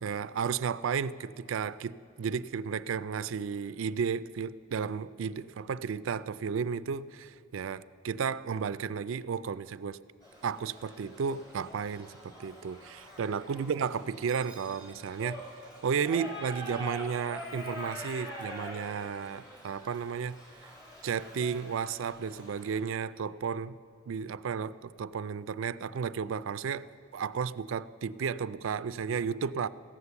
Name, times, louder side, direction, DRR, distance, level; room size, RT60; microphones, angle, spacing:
voice 1, 0.0-10.0 10.4-15.4 15.8-20.7 21.0-23.7 24.1-29.7, right 6 dB, 65° right, 16 dB, 0.4 m, -33 dB
Shout / Livestock farm animals working animals, 10.2-22.8, equal, 20° left, 2.7 m, -45 dB
15.0 x 9.6 x 6.9 m, 2.5 s
head